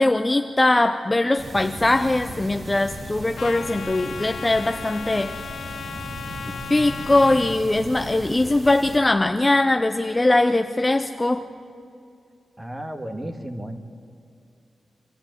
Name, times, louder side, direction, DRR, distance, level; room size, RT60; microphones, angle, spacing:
voice 1, 0.0-5.8 6.7-11.5, left 2 dB, 20° left, 7 dB, 0.7 m, -21 dB
sound 1, 1.4-9.0, right 1 dB, 40° right, 3.7 m, -37 dB
Trumpet, 3.4-7.6, left 7 dB, 75° left, 0.9 m, -36 dB
voice 2, 12.6-13.8, right 1 dB, 20° right, 6 dB, 1.9 m, -33 dB
26.0 x 14.5 x 9.4 m, 2.4 s
wide cardioid pair, 105°, 0 cm